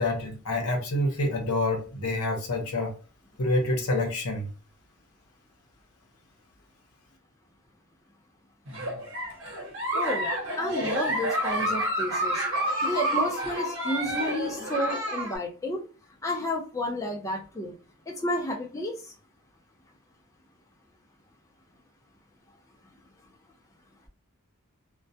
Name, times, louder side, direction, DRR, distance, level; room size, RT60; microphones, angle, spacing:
voice 1, 0.0-2.9 3.4-4.5, left 1 dB, 75° left, 0.8 m, -27 dB
Giggle, 8.7-15.4, right 1 dB, 60° right, 0.9 m, -29 dB
voice 2, 9.9-10.3 10.6-12.4 12.8-15.8 16.2-17.7 18.1-18.9, left 1 dB, 15° left, 0.4 m, -31 dB
2.2 x 2.1 x 2.6 m
head